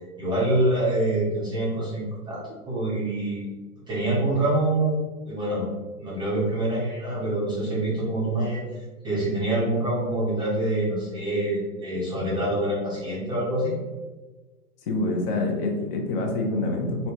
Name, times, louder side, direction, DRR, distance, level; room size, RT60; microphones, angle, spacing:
voice 1, 0.2-3.5 3.9-5.0 5.3-5.7 6.0-8.6 9.0-13.7, right 1 dB, 10° right, -8 dB, 0.5 m, -25 dB
voice 2, 14.9-17.1, left 2 dB, 40° left, 2 dB, 0.6 m, -26 dB
4.2 x 2.1 x 2.8 m, 1.2 s
hypercardioid pair, 130°, 44 cm